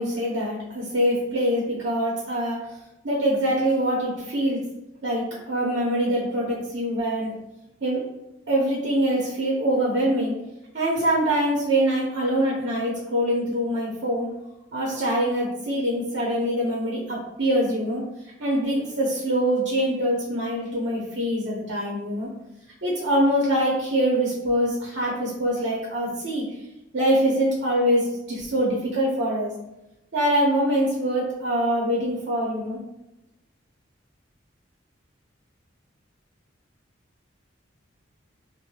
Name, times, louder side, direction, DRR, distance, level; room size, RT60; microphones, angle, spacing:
voice 1, 0.0-2.7 3.0-4.6 5.0-7.3 7.8-8.0 8.5-10.3 10.7-14.3 14.7-18.0 18.4-22.3 22.8-26.4 26.9-29.5 30.1-32.8, equal, 60° right, -4 dB, 0.8 m, -24 dB
4.6 x 2.1 x 2.3 m, 0.90 s
head